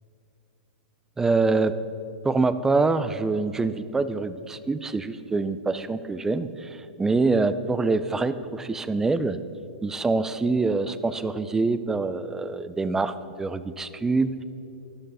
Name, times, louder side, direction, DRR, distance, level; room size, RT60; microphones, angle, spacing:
voice 1, 1.2-1.8 2.2-9.4 9.8-14.4, right 3 dB, 10° right, 13 dB, 0.6 m, -25 dB
13.5 x 12.0 x 5.6 m, 2.9 s
hypercardioid pair, 130°, 5 cm